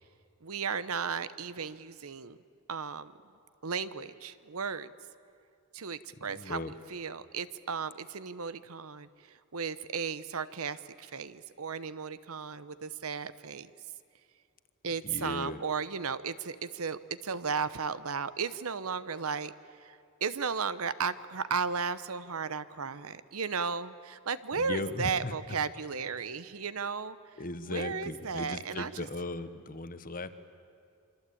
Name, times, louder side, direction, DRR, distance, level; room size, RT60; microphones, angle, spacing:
voice 1, 0.4-2.4 2.7-3.1 3.6-4.9 5.7-9.1 9.5-13.7 14.8-19.5 19.8-27.2 27.7-29.1, right 5 dB, 70° right, 14 dB, 0.9 m, -35 dB
voice 2, 6.3-6.7 15.0-15.6 24.6-25.3 27.4-30.3, left 2 dB, 40° left, 11 dB, 1.1 m, -37 dB
27.5 x 24.5 x 8.6 m, 2.4 s
head